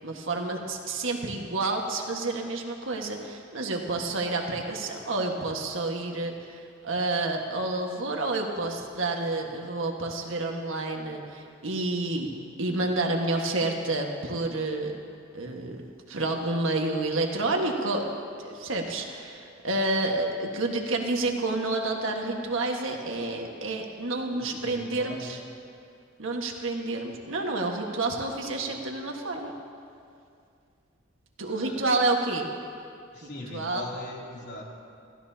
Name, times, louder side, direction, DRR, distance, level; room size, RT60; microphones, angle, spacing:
voice 1, 0.0-12.3 12.6-14.9 15.3-15.8 16.1-18.1 18.4-25.4 26.2-29.5 31.4-32.5 33.5-33.8, right 2 dB, 80° right, 1 dB, 1.6 m, -29 dB
voice 2, 24.3-25.4 31.5-31.9 33.1-34.6, left 1 dB, 55° left, -4 dB, 3.1 m, -41 dB
28.0 x 15.0 x 2.8 m, 2.4 s
head